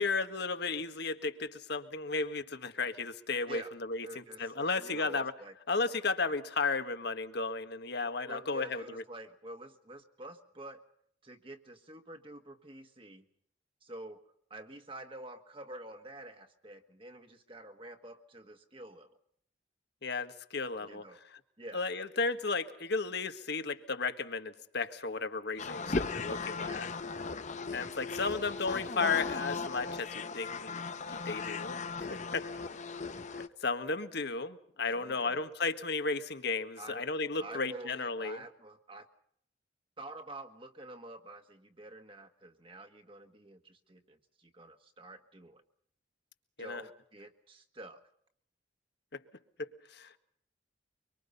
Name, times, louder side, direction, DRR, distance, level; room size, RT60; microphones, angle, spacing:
voice 1, 0.0-5.3 5.7-8.8 20.0-21.0 21.7-26.9 27.7-30.8 31.1-31.8 32.1-32.5 33.3-38.4 46.6-46.8 49.1-49.2 49.6-50.2, left 4 dB, 60° left, 9 dB, 1.7 m, -34 dB
voice 2, 4.0-5.5 6.2-6.3 8.3-10.8 11.2-13.3 13.8-19.2 20.8-21.2 21.6-21.9 26.2-27.1 28.1-28.5 34.9-35.4 36.8-37.0 37.4-39.1 40.0-45.6 46.6-48.0, right 1 dB, 30° right, 5 dB, 1.7 m, -48 dB
sound 1, 25.6-33.5, left 4 dB, 40° left, 0.9 m, -37 dB
24.5 x 24.0 x 5.5 m, 0.66 s
head